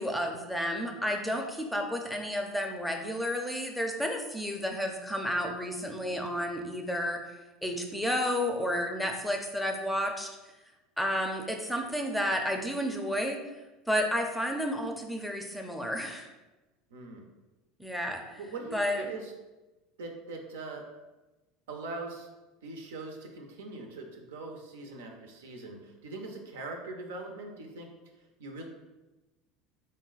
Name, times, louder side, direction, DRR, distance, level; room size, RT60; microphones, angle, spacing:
voice 1, 0.0-7.2 7.6-10.3 11.0-13.4 13.9-16.3 17.8-18.2 18.7-19.0, equal, 5° left, 3 dB, 0.5 m, -31 dB
voice 2, 16.9-17.3 18.4-19.3 20.0-20.8 21.7-22.3 22.6-27.9 28.4-28.6, right 3 dB, 90° right, 2 dB, 0.6 m, -41 dB
3.9 x 2.1 x 3.9 m, 1.1 s
supercardioid pair, 100°, 0 cm